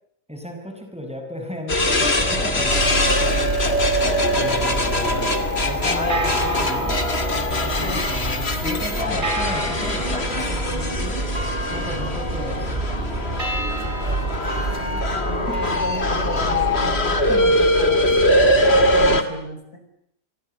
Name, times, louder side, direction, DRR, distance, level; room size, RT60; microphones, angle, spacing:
voice 1, 0.3-3.6 4.3-5.3 5.7-7.0 7.4-11.2 11.7-12.8, equal, 5° right, 4 dB, 6.8 m, -34 dB
sound 1, 1.7-19.2, left 1 dB, 40° left, 2.7 m, -22 dB
sound 2, 1.7-19.2, right 1 dB, 30° right, 4.2 m, -28 dB
sound 3, 2.7-9.0, equal, 55° right, 4.5 m, -32 dB
voice 2, 14.8-16.7 17.3-18.0 18.7-19.6, left 1 dB, 75° left, 7 dB, 6.0 m, -33 dB
30.0 x 24.0 x 8.1 m, 0.72 s
omnidirectional pair, 1.6 m